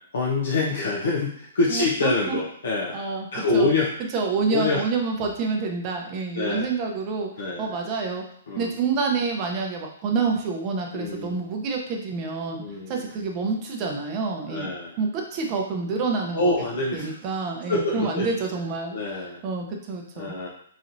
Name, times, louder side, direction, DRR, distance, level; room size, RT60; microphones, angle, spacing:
voice 1, 0.1-3.0 3.3-3.9 4.5-4.8 6.3-6.7 7.4-7.7 8.5-8.7 10.9-11.4 12.5-13.0 14.5-15.0 16.3-17.2 17.7-18.3 18.9-19.4 20.2-20.5, left 3 dB, 75° left, -3 dB, 0.7 m, -25 dB
voice 2, 1.7-2.4 2.9-3.3 3.5-3.7 4.1-8.2 8.6-14.7 15.0-16.7 16.9-20.5, right 4 dB, 25° right, 1 dB, 0.6 m, -28 dB
4.1 x 3.0 x 2.6 m, 0.68 s
hypercardioid pair, 165°, 0 cm